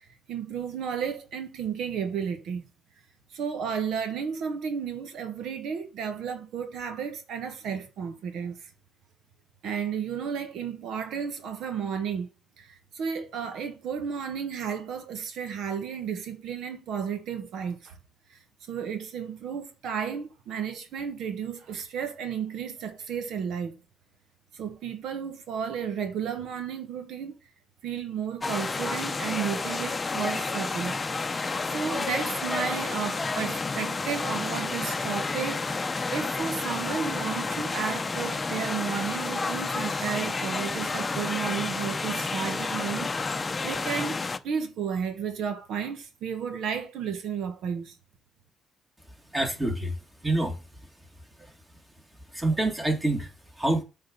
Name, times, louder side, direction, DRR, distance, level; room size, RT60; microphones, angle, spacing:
voice 1, 0.0-2.6 3.3-8.7 9.6-12.3 12.6-18.0 18.3-18.4 18.7-23.8 24.5-27.4 27.8-31.0 31.3-43.1 43.6-48.0, right 7 dB, 80° right, 1.2 m, -33 dB
sound 1, 28.4-44.4, left 4 dB, 25° left, 0.7 m, -30 dB
voice 2, 49.3-50.9 51.4-51.6 52.3-53.8, right 2 dB, 15° right, 2.3 m, -28 dB
8.1 x 3.9 x 5.4 m
cardioid pair, 90°, 0 cm